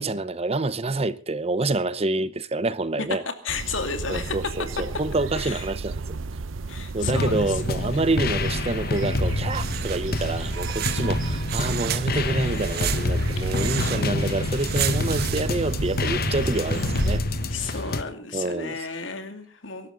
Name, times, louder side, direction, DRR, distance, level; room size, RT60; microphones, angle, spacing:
voice 1, 0.0-3.2 4.1-6.0 6.9-17.2 17.6-17.8 18.3-18.9, right 2 dB, 30° right, 0.8 m, -27 dB
voice 2, 3.4-4.4 5.3-5.6 6.7-7.6 7.9-8.1 13.4-13.9 17.5-19.9, left 4 dB, 70° left, 2.6 m, -33 dB
sound 1, 3.5-17.2, right 3 dB, 80° right, 0.7 m, -33 dB
sound 2, 7.0-18.0, left 2 dB, 50° left, 1.1 m, -28 dB
sound 3, 9.1-17.7, right 6 dB, 55° right, 1.2 m, -33 dB
23.0 x 12.0 x 3.9 m
head